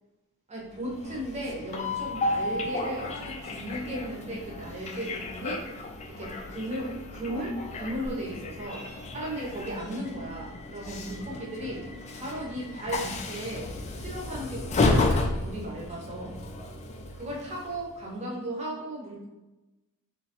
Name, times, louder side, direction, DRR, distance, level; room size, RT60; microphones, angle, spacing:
voice 1, 0.5-5.6 6.1-8.8 9.1-13.7 13.9-16.4 17.1-19.3, right 1 dB, 30° right, -3 dB, 0.8 m, -36 dB
Train, 0.7-18.0, left 2 dB, 30° left, 0.3 m, -33 dB
3.2 x 3.0 x 2.9 m, 1.0 s
head